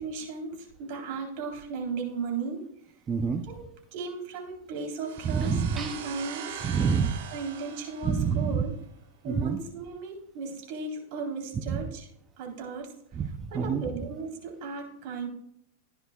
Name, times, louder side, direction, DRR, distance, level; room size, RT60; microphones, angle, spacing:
voice 1, 0.0-2.7 3.5-3.7 3.9-6.6 7.3-8.7 9.2-12.1 12.4-13.2 13.5-15.3, right 4 dB, 55° right, 0 dB, 3.9 m, -36 dB
voice 2, 3.1-3.4 5.2-6.0 6.6-7.2 8.0-8.6 9.3-9.6 11.7-11.8 13.2-13.8, right 6 dB, 20° right, 6 dB, 0.7 m, -27 dB
fx-subzero, 5.0-8.8, right 7 dB, 75° right, 3.2 m, -42 dB
15.5 x 10.0 x 2.4 m, 0.74 s
supercardioid pair, 140°, 0 cm